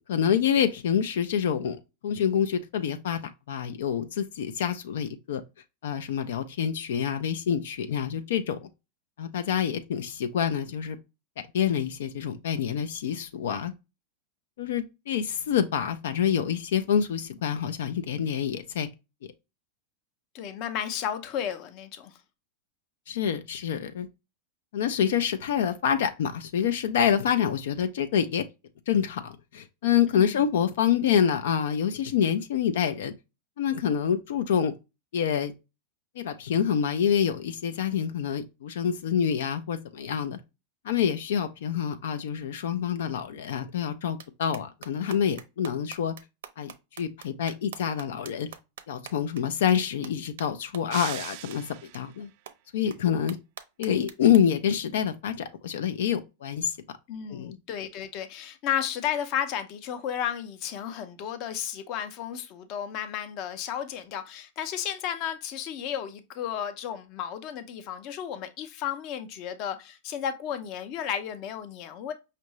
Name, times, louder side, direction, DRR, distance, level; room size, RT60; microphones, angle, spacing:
voice 1, 0.1-3.2 3.5-5.4 5.8-8.7 9.2-11.0 11.5-13.7 14.6-18.9 19.2-19.3 23.1-24.1 24.7-28.5 28.9-33.1 33.6-34.7 35.1-35.5 36.2-40.4 40.8-46.1 46.6-48.5 48.9-52.3 52.7-53.4 53.8-56.8 57.3-57.6, left 8 dB, 80° left, 0.5 m, -27 dB
voice 2, 20.3-22.2 30.1-30.5 57.1-72.1, left 9 dB, 40° left, 0.7 m, -33 dB
sound 1, 44.2-44.3 44.5-49.4 49.7-49.8 50.0-50.1 50.4-50.5 50.7-50.8 51.1-51.2 51.5-51.6 51.9-52.0 52.5-52.6 52.9-53.0 53.3-54.4, right 9 dB, 85° right, 0.7 m, -43 dB
sound 2, 50.9-52.2, right 15 dB, 50° right, 0.3 m, -39 dB
5.5 x 2.5 x 3.0 m
supercardioid pair, 155°, 0 cm